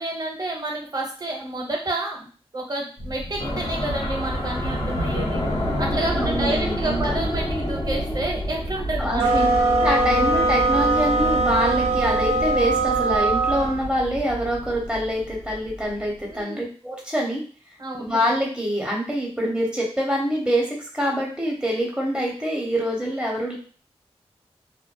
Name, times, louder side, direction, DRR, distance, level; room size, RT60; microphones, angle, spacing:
voice 1, 0.0-2.3 2.5-5.4 5.8-9.3 16.3-16.7 17.8-18.0, right 1 dB, 40° right, 0 dB, 0.8 m, -29 dB
sound 1, 3.0-8.8, left 1 dB, 55° left, 0.9 m, -37 dB
sound 2, 3.4-16.0, equal, 80° left, 1.0 m, -29 dB
voice 2, 6.2-7.1 9.0-9.5 9.8-17.4 18.0-23.5, equal, 10° right, -2 dB, 1.1 m, -25 dB
sound 3, 9.1-13.8, right 2 dB, 70° right, 0.5 m, -21 dB
2.5 x 2.3 x 2.2 m, 0.40 s
cardioid pair, 50°, 11 cm